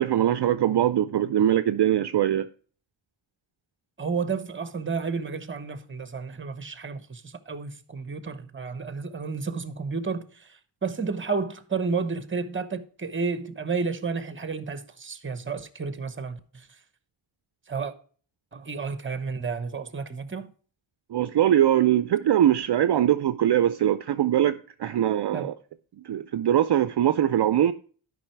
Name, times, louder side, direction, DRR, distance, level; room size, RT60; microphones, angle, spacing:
voice 1, 0.0-2.5 21.1-25.5 26.0-27.7, right 11 dB, 55° right, 0.5 m, -22 dB
voice 2, 4.0-16.8 17.7-17.9 18.5-20.5 25.3-25.5, right 5 dB, 25° right, 0.9 m, -31 dB
12.0 x 5.5 x 4.5 m
wide cardioid pair, 115°, 49 cm